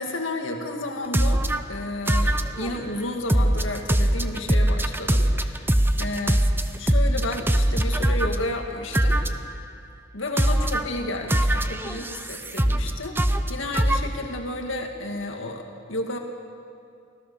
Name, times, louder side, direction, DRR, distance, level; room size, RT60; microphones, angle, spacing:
voice 1, 0.0-6.4 6.7-9.2 10.1-16.2, left 2 dB, 75° left, 3 dB, 2.1 m, -32 dB
sound 1, 1.1-1.6 2.1-2.8 3.3-8.4 8.9-9.5 10.4-10.8 11.3-12.9 13.2-14.0, right 1 dB, 10° right, 0.8 m, -21 dB
24.5 x 17.0 x 7.0 m, 2.3 s
head